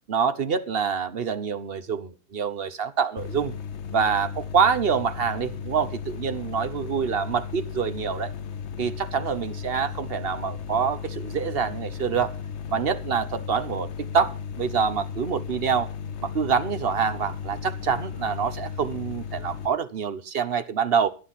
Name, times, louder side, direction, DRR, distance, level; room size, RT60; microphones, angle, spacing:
voice 1, 0.1-3.5 3.9-8.3 8.8-12.4 12.7-15.9 16.2-21.1, right 6 dB, 45° right, 1.0 m, -26 dB
sound 1, 3.2-19.7, left 7 dB, 55° left, 0.9 m, -35 dB
13.0 x 9.9 x 5.7 m
omnidirectional pair, 1.7 m